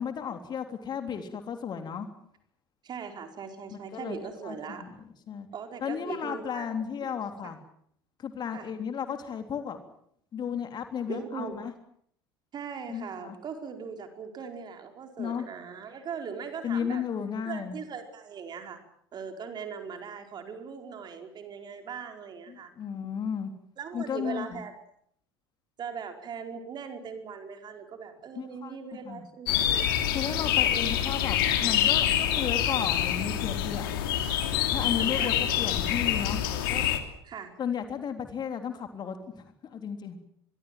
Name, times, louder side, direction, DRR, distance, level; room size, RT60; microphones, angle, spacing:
voice 1, 0.0-2.1 3.7-4.9 5.3-5.5 5.8-7.6 8.2-9.8 10.3-11.7 12.9-13.4 15.2-15.5 16.6-17.8 22.5-23.5 23.9-24.6 28.4-28.8 29.1-29.2 30.1-34.0 34.7-36.9 37.6-40.2, left 7 dB, 35° left, 7 dB, 3.5 m, -34 dB
voice 2, 2.8-4.8 5.5-6.7 7.0-7.2 7.4-7.5 8.5-8.7 11.1-11.6 12.5-17.0 17.4-18.8 19.1-22.7 23.8-24.7 25.8-29.9 34.5-35.5 37.2-37.5, right 6 dB, 35° right, 5 dB, 4.7 m, -40 dB
sound 1, 29.5-37.0, left 11 dB, 60° left, 3.0 m, -26 dB
25.5 x 22.5 x 7.7 m, 0.68 s
figure-of-eight pair, 70°, 13 cm